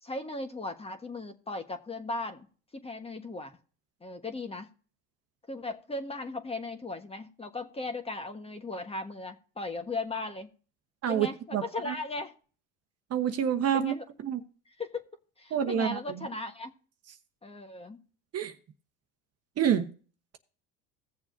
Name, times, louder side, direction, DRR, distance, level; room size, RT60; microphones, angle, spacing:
voice 1, 0.0-2.5 2.7-3.6 4.0-4.7 5.5-10.5 11.1-12.3 13.7-14.0 14.8-15.0 15.4-16.7 17.4-18.0, left 2 dB, 15° left, 7 dB, 1.3 m, -37 dB
voice 2, 11.0-11.9 13.1-13.9 14.2-14.4 15.5-16.3 18.3-18.5 19.6-19.9, right 9 dB, 40° right, 7 dB, 1.2 m, -28 dB
16.5 x 7.1 x 2.7 m, 0.39 s
supercardioid pair, 95°, 37 cm